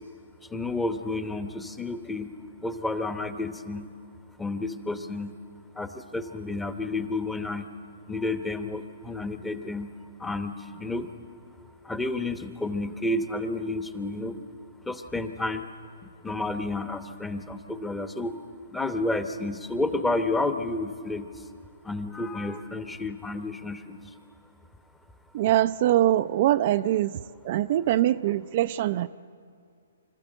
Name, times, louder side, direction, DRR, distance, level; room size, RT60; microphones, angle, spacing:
voice 1, 0.5-2.3 2.6-3.9 4.4-5.3 5.8-7.7 8.1-9.9 10.2-11.1 11.9-14.4 14.9-15.6 16.2-18.3 18.7-21.3 21.8-24.0, left 2 dB, 5° left, 9 dB, 1.0 m, -30 dB
voice 2, 25.3-29.1, right 13 dB, 45° right, 10 dB, 0.4 m, -23 dB
25.5 x 13.5 x 7.8 m, 2.3 s
hypercardioid pair, 140°, 0 cm